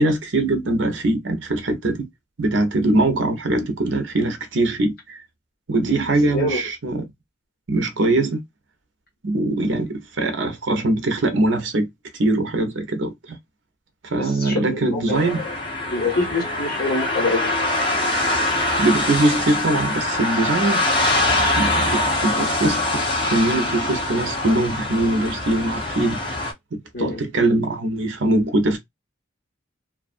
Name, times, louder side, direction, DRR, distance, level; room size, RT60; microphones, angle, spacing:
voice 1, 0.0-2.1 2.4-5.2 5.7-7.0 7.7-8.4 9.2-11.9 12.2-13.4 14.0-15.4 18.8-20.8 21.6-23.0 23.2-26.2 26.7-28.8, right 2 dB, 65° right, 0.7 m, -22 dB
voice 2, 14.2-15.5 15.9-17.5 26.9-27.2, left 3 dB, 50° left, 1.2 m, -25 dB
sound 1, 15.1-26.5, left 2 dB, 25° left, 0.8 m, -23 dB
2.5 x 2.3 x 2.4 m
head